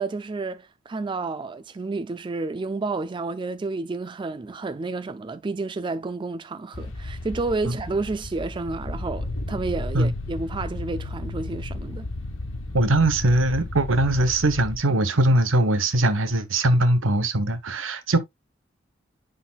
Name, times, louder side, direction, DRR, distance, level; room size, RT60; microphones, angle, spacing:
voice 1, 0.0-12.1, right 3 dB, 25° right, 0.3 m, -30 dB
sound 1, 6.7-14.8, left 2 dB, 80° left, 1.4 m, -34 dB
voice 2, 12.7-18.2, right 1 dB, 75° right, 1.1 m, -21 dB
9.8 x 4.1 x 2.3 m
head